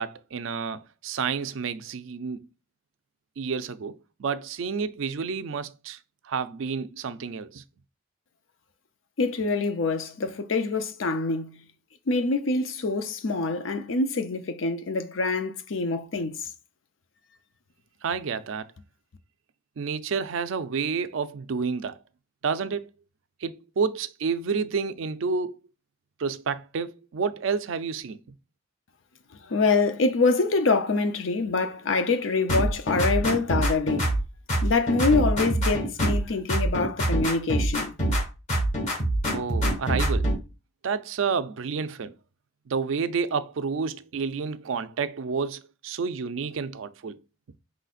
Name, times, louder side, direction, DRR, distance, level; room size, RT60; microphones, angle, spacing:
voice 1, 0.0-2.5 3.4-6.0 6.2-7.6 18.0-18.7 19.8-22.0 22.4-22.9 23.4-25.5 26.2-28.2 39.3-40.3 40.8-42.1 42.7-47.2, right 5 dB, 75° right, 0.4 m, -30 dB
voice 2, 9.2-11.6 12.1-16.5 29.5-34.1 34.6-37.9, left 3 dB, 70° left, 0.6 m, -25 dB
sound 1, 32.5-34.2 34.5-36.2 36.5-38.2 38.5-40.4, right 1 dB, 40° left, 1.5 m, -25 dB
4.8 x 3.9 x 2.4 m
head